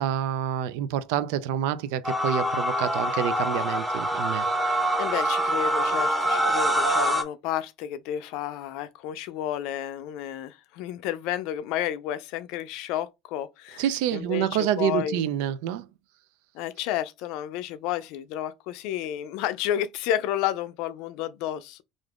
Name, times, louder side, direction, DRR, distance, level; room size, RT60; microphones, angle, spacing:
voice 1, 0.0-4.5 13.8-15.9, right 10 dB, 90° right, 0.3 m, -27 dB
sound 1, 2.0-7.2, right 1 dB, 10° right, 0.4 m, -25 dB
voice 2, 5.0-13.8 14.1-15.2 16.5-21.8, left 11 dB, 70° left, 0.4 m, -31 dB
2.5 x 2.4 x 3.4 m
cardioid pair, 140°, 0 cm